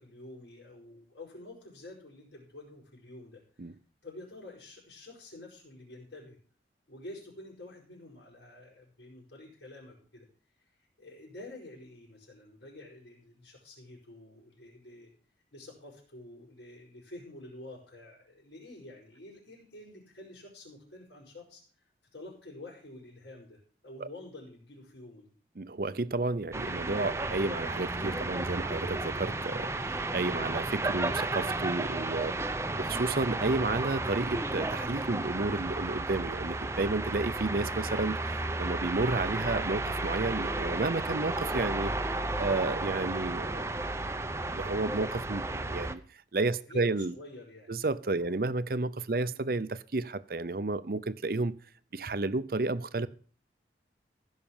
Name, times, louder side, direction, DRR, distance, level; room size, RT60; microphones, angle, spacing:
voice 1, 0.0-3.4 3.7-3.8 4.0-6.4 6.9-10.3 10.8-15.1 15.5-21.6 22.1-25.3 39.3-39.5 46.7-47.8 48.1-48.3 49.1-49.4, left 1 dB, 80° left, 5.2 m, -48 dB
voice 2, 25.6-41.9 42.4-43.7 44.5-46.0 46.3-47.1 47.7-51.6 51.9-53.1, right 3 dB, 55° right, 0.6 m, -31 dB
sound 1, 26.5-45.9, right 2 dB, 15° right, 0.6 m, -33 dB
15.5 x 6.5 x 7.2 m
head